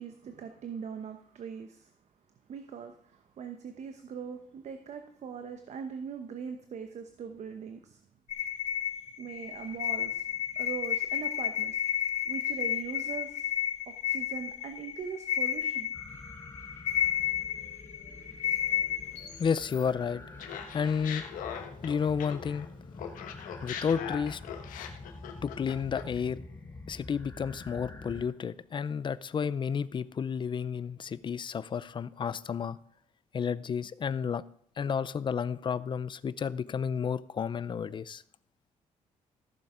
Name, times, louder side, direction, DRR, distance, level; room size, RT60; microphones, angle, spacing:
voice 1, 0.0-1.9 2.5-8.0 9.2-10.2 10.5-11.8 12.2-13.5 13.9-15.9, right 6 dB, 55° right, 1.0 m, -41 dB
sound 1, 8.3-19.8, left 10 dB, 55° left, 3.5 m, -32 dB
sound 2, 15.9-28.3, left 2 dB, 20° left, 2.1 m, -47 dB
voice 2, 19.4-20.2 20.7-21.2 21.8-22.7 23.6-24.4 25.4-26.4 26.9-32.8 33.3-34.4 34.8-38.2, left 6 dB, 35° left, 0.5 m, -31 dB
Laughter, 20.4-22.7 23.0-26.2, left 8 dB, 80° left, 1.3 m, -40 dB
15.0 x 6.9 x 4.9 m
cardioid pair, 100°, 14 cm